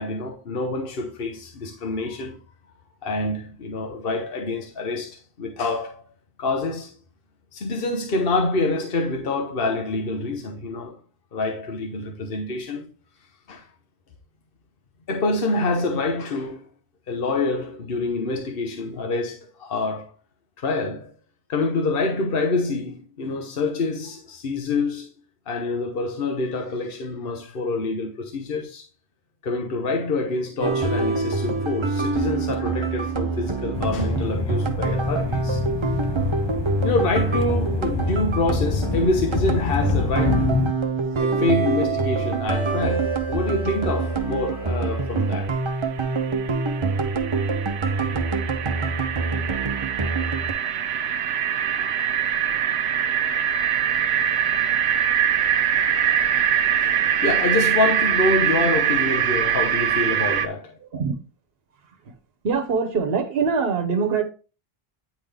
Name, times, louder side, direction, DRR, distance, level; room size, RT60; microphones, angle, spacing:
voice 1, 0.0-2.4 3.0-6.1 6.4-7.0 7.5-11.0 11.3-12.9 13.5-13.7 15.1-16.7 17.1-20.1 20.6-21.1 21.5-25.1 25.5-28.8 29.4-35.6 36.8-40.7 41.2-45.6 57.2-60.8, left 3 dB, 60° left, 1.2 m, -26 dB
sound 1, 30.6-50.5, right 4 dB, 35° right, 0.7 m, -25 dB
sound 2, 33.7-40.7, left 6 dB, 45° left, 0.3 m, -27 dB
sound 3, 45.5-45.6 45.8-60.5, right 9 dB, 90° right, 0.9 m, -23 dB
voice 2, 60.8-61.1 62.0-62.1 62.4-64.2, right 5 dB, 70° right, 1.2 m, -23 dB
9.5 x 3.8 x 3.4 m
omnidirectional pair, 1.1 m